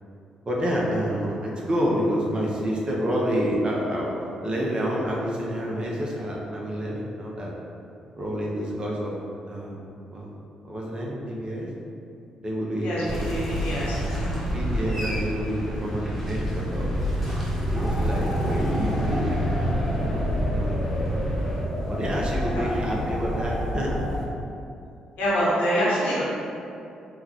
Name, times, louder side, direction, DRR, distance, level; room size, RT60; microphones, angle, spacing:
voice 1, 0.4-4.1 4.4-7.5 8.2-9.1 9.5-9.8 10.1-10.3 10.6-11.7 12.4-13.2 14.5-16.9 17.7-21.0 21.9-24.0, equal, 35° right, -3 dB, 0.7 m, -28 dB
voice 2, 12.8-14.3 22.5-22.6 25.2-26.2, equal, 70° left, -8 dB, 0.9 m, -26 dB
sound 1, 13.0-21.6, equal, ahead, 1.2 m, -28 dB
sound 2, 17.7-24.3, equal, 20° left, 0.7 m, -29 dB
3.7 x 2.2 x 2.9 m, 2.6 s
hypercardioid pair, 40°, 3 cm